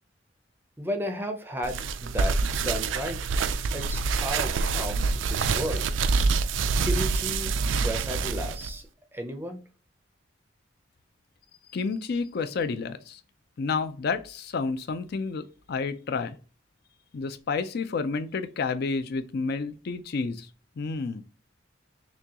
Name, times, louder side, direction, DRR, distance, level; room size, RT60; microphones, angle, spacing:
voice 1, 0.8-3.3 3.7-5.8 6.8-7.5 7.8-8.9 9.1-9.6, equal, 10° right, 0.5 m, -34 dB
sound 1, 1.6-8.7, right 4 dB, 85° right, 0.4 m, -26 dB
voice 2, 11.7-13.2 13.6-16.3 17.1-20.5 20.8-21.2, left 4 dB, 55° left, 0.4 m, -30 dB
6.1 x 2.3 x 2.8 m
head